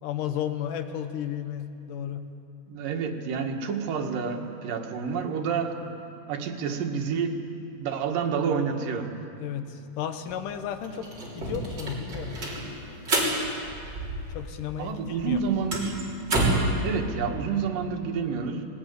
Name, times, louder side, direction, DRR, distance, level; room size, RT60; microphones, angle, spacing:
voice 1, 0.0-2.3 9.4-11.1 11.3-12.4 14.3-15.4, left 9 dB, 75° left, 8 dB, 2.5 m, -33 dB
voice 2, 2.7-5.7 6.3-7.4 7.8-9.1 14.8-16.0 16.8-18.6, right 6 dB, 80° right, 3 dB, 3.2 m, -29 dB
sound 1, 10.3-10.4 10.6-14.6 14.8-16.8, right 2 dB, 30° right, 4.2 m, -29 dB
20.0 x 18.5 x 9.4 m, 2.8 s
omnidirectional pair, 3.9 m